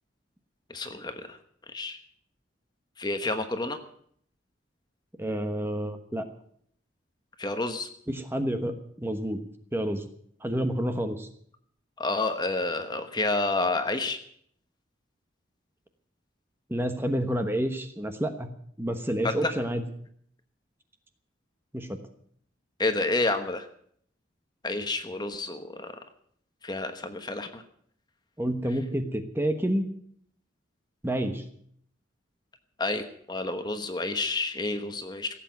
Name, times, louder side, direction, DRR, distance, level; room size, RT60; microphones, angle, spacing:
voice 1, 0.7-1.4 1.7-2.0 3.0-3.8 7.4-7.9 12.0-14.2 19.2-19.5 22.8-23.7 24.6-25.9 26.6-27.6 32.8-35.3, left 2 dB, 20° left, 8 dB, 1.1 m, -29 dB
voice 2, 5.2-6.2 8.1-9.4 9.7-10.0 10.4-11.3 16.7-18.5 18.8-19.8 21.7-22.0 28.4-29.9 31.0-31.4, right 1 dB, 10° right, 7 dB, 1.2 m, -29 dB
16.5 x 8.4 x 9.4 m, 0.64 s
head